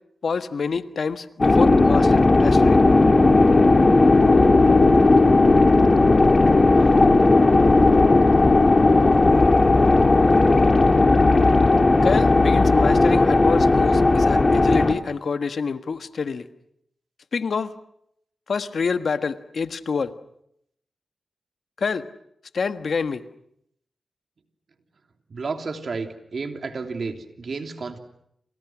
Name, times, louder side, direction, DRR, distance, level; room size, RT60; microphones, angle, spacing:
voice 1, 0.2-2.8 12.0-16.5 17.3-17.7 18.5-20.1 21.8-22.1 22.5-23.2, left 5 dB, 70° left, 9 dB, 1.4 m, -27 dB
sound 1, 1.4-14.9, left 3 dB, 40° left, 2.4 m, -16 dB
voice 2, 25.3-28.0, right 4 dB, 65° right, 5 dB, 3.1 m, -31 dB
29.5 x 28.0 x 6.2 m, 0.74 s
cardioid pair, 45°, 0 cm